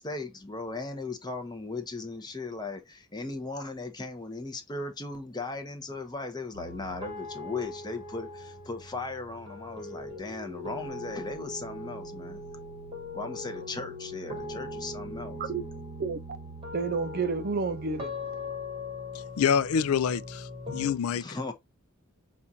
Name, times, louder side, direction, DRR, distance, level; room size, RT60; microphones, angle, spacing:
voice 1, 0.0-12.4 13.1-15.4 21.1-21.5, left 3 dB, 20° left, 0.7 m, -37 dB
sound 1, 6.5-20.9, left 2 dB, 25° right, 1.0 m, -40 dB
voice 2, 16.7-18.1, right 4 dB, 45° right, 0.5 m, -29 dB
voice 3, 19.4-21.4, left 7 dB, 70° left, 0.4 m, -27 dB
5.9 x 2.5 x 2.7 m
head